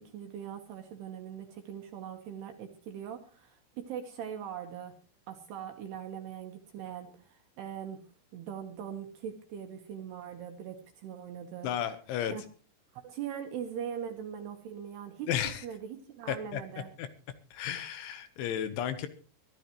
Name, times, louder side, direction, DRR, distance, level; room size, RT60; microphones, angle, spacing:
voice 1, 0.0-5.0 5.3-8.0 8.3-11.7 12.3-12.4 12.9-15.3 15.6-16.9, right 8 dB, 70° right, 5 dB, 2.7 m, -41 dB
voice 2, 11.6-12.3 15.3-15.6 16.3-16.6 17.0-17.1 17.5-19.1, left 9 dB, 75° left, 10 dB, 3.2 m, -33 dB
22.5 x 13.5 x 3.1 m, 0.35 s
omnidirectional pair, 6.0 m